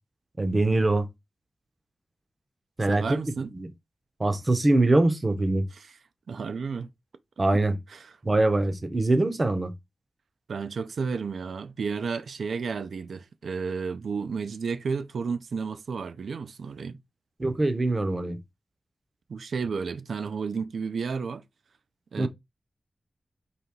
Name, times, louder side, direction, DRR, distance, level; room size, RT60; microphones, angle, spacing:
voice 1, 0.4-1.1 2.8-3.2 3.5-3.7 4.2-5.7 7.4-7.8 8.2-9.7 17.4-18.4 22.2-22.3, right 2 dB, 25° right, 0.6 m, -23 dB
voice 2, 2.9-3.5 5.7-5.9 6.3-6.9 7.9-8.1 10.5-17.0 19.3-21.4 22.1-22.3, right 5 dB, 80° right, 0.4 m, -32 dB
4.2 x 2.8 x 3.5 m
wide cardioid pair, 140°, 0 cm